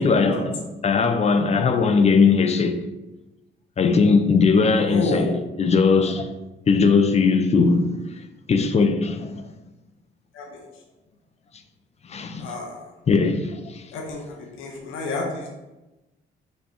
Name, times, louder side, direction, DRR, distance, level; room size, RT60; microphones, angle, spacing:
voice 1, 0.0-2.8 3.8-6.3 6.7-7.9 8.5-9.4 12.1-12.5 13.1-13.8, left 4 dB, 35° left, 0.5 m, -19 dB
voice 2, 4.9-5.3 10.3-10.6 12.4-12.9 13.9-15.5, left 3 dB, 85° left, 0.9 m, -30 dB
5.4 x 2.2 x 4.3 m
cardioid pair, 90°, 20 cm